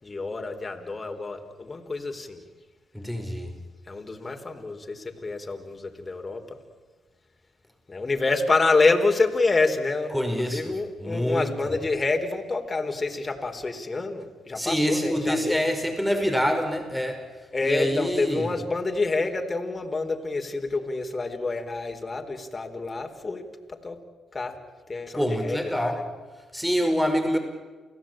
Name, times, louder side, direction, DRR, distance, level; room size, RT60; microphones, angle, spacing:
voice 1, 0.0-2.4 3.9-6.6 7.9-15.6 17.5-24.0 24.3-24.6 24.9-26.0, left 3 dB, 30° left, 4 dB, 3.9 m, -27 dB
voice 2, 2.9-3.5 10.1-10.7 11.0-11.5 14.6-17.2 17.6-18.5 25.1-26.0 26.5-27.4, equal, 5° right, 4 dB, 5.5 m, -26 dB
29.0 x 17.0 x 8.9 m, 1.4 s
supercardioid pair, 55°, 0 cm